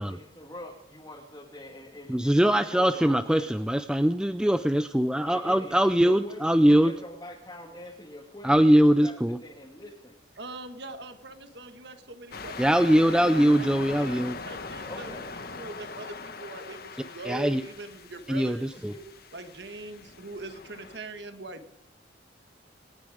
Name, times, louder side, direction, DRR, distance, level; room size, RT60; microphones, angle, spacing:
voice 1, 0.0-3.5 5.2-9.1 9.4-10.2 14.9-15.3 18.9-19.0, left 1 dB, 20° left, -2 dB, 2.0 m, -44 dB
voice 2, 2.1-6.9 8.4-9.4 12.6-14.4 17.3-17.6 18.3-18.9, equal, 5° right, 10 dB, 0.5 m, -22 dB
voice 3, 10.4-15.2 15.5-18.8 19.3-21.7, right 2 dB, 65° right, 8 dB, 1.6 m, -42 dB
sound 1, 12.3-21.0, left 4 dB, 55° left, 1.2 m, -41 dB
27.0 x 9.8 x 5.0 m, 0.90 s
head